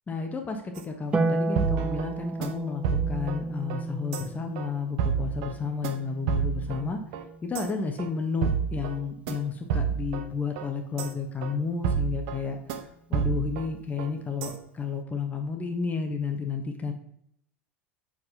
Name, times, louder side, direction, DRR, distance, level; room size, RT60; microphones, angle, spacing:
voice 1, 0.1-7.0 7.4-12.6 13.1-16.9, left 5 dB, 25° left, 4 dB, 1.2 m, -32 dB
sound 1, 0.7-0.8 1.1-1.2 1.6-2.1 2.4-2.5 2.8-3.4 3.7-3.8 4.1-4.2 4.6-4.7 5.0-5.5 5.8-6.0 6.3-6.8 7.1-7.2 7.5-7.7 8.0-8.1 8.4-9.0 9.3-9.4 9.7-10.2 10.6-10.7 11.0-11.1 11.4-11.5 11.8-12.4 12.7-12.8 13.1-13.7 14.0-14.1 14.4-14.5, right 7 dB, 60° right, 1.1 m, -29 dB
Harp, 1.1-7.6 9.3-10.3, right 2 dB, 15° right, 0.6 m, -34 dB
6.1 x 5.0 x 5.6 m, 0.72 s
hypercardioid pair, 80°, 7 cm